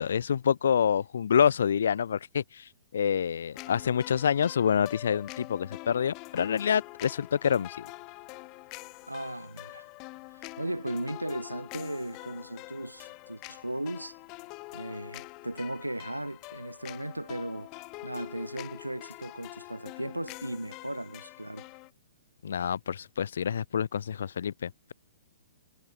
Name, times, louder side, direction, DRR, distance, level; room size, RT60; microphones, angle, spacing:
voice 1, 0.0-7.8 22.4-24.9, left 8 dB, 60° left, 0.9 m, -27 dB
sound 1, 3.5-21.9, left 27 dB, 30° left, 5.2 m, -45 dB
voice 2, 9.1-9.9 10.3-14.2 14.7-17.7 18.0-21.7, right 1 dB, 90° right, 5.4 m, -37 dB
figure-of-eight pair, 115°, 0 cm